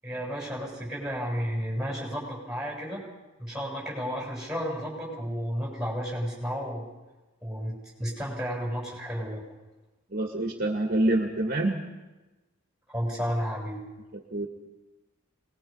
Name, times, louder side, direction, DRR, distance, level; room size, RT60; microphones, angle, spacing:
voice 1, 0.0-3.0 3.4-6.8 7.4-9.4 12.9-13.8, equal, 5° right, -2 dB, 7.8 m, -32 dB
voice 2, 10.1-11.8 14.1-14.5, right 1 dB, 45° right, 2 dB, 2.0 m, -26 dB
25.0 x 21.0 x 5.6 m, 1.1 s
head